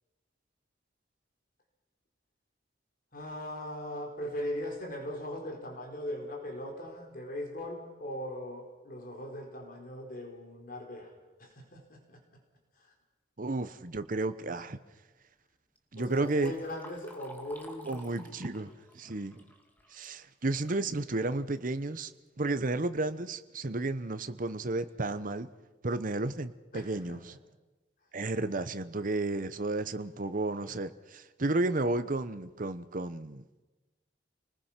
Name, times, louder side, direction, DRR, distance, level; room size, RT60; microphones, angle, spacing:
voice 1, 3.1-12.2 12.8-12.9 16.0-18.7 26.7-27.3, left 1 dB, 55° left, 2 dB, 4.4 m, -40 dB
voice 2, 13.4-14.8 15.9-16.5 17.9-18.7 18.9-19.4 19.9-22.1 22.4-25.5 25.8-27.3 28.1-33.4, right 2 dB, 50° right, 11 dB, 1.0 m, -32 dB
Liquid, 15.8-20.9 21.3-21.4 22.3-22.4 22.8-23.1 23.7-23.8 24.3-24.4 24.8-25.1, equal, 10° left, 2.2 m, -53 dB
29.5 x 20.0 x 5.9 m, 1.1 s
head